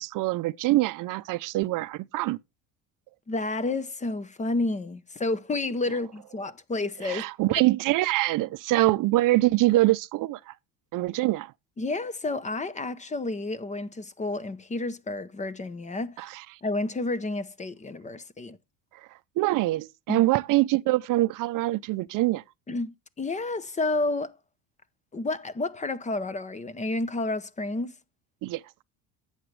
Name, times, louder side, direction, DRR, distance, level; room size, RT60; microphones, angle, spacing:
voice 1, 0.0-2.4 7.0-10.5 10.9-11.5 16.2-16.4 19.4-22.4 28.4-28.6, right 18 dB, 55° right, 0.6 m, -24 dB
voice 2, 3.3-7.2 11.8-16.2 16.6-18.6 20.1-20.3 22.7-24.4 25.1-27.9, left 2 dB, 20° left, 0.7 m, -30 dB
11.0 x 8.1 x 3.2 m
supercardioid pair, 110°, 38 cm